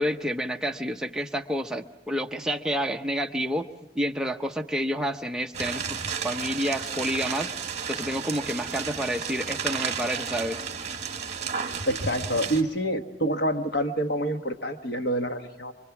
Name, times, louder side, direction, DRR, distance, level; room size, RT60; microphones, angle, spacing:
voice 1, 0.0-3.7 3.9-7.5 7.9-10.6, equal, 5° right, 3 dB, 0.8 m, -29 dB
sound 1, 5.5-12.6, right 6 dB, 40° right, 1.8 m, -32 dB
voice 2, 11.9-15.7, right 1 dB, 65° left, 6 dB, 1.4 m, -27 dB
25.0 x 24.5 x 6.0 m, 1.0 s
head